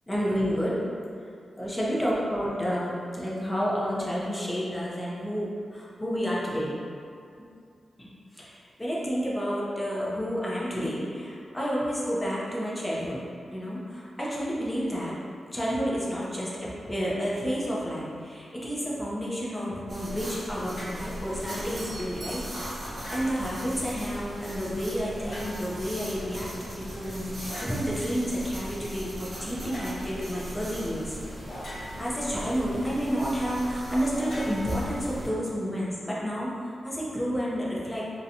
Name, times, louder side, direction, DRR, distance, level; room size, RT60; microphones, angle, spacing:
voice 1, 0.1-0.8 1.6-6.7 8.0-13.2 13.5-15.2 15.5-22.4 23.1-31.2 31.6-38.0, equal, 10° left, -6 dB, 0.6 m, -30 dB
sound 1, 19.9-35.3, equal, 40° right, 0.9 m, -39 dB
sound 2, 20.7-21.0 22.9-23.6 25.2-25.8 27.5-27.8 29.7-30.0 31.5-32.2 34.1-35.3, equal, 70° left, 0.9 m, -41 dB
Doorbell, 21.7-24.2, right 2 dB, 65° right, 0.5 m, -46 dB
2.8 x 2.2 x 2.6 m, 2.4 s
wide cardioid pair, 100°, 0 cm